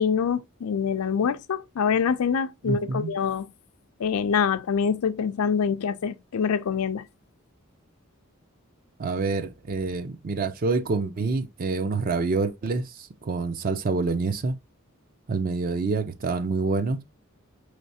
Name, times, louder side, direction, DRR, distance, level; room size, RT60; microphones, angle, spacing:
voice 1, 0.0-3.5 4.0-7.0, left 6 dB, 90° left, 0.4 m, -25 dB
voice 2, 2.6-3.1 9.0-14.5 15.3-17.0, right 3 dB, 40° right, 0.5 m, -27 dB
4.7 x 3.2 x 2.7 m
head